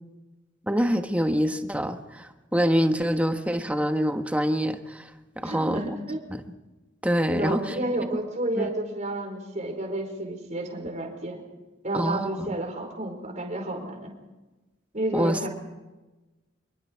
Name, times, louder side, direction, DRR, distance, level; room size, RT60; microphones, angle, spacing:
voice 1, 0.7-5.1 5.4-5.8 6.3-6.4 7.0-7.7 8.6-8.7 11.9-12.5 15.1-15.5, equal, 10° right, 6 dB, 1.3 m, -25 dB
voice 2, 5.4-6.2 7.3-11.4 11.8-14.2 14.9-15.5, right 1 dB, 40° right, 2 dB, 5.0 m, -31 dB
26.0 x 23.0 x 4.7 m, 1.1 s
head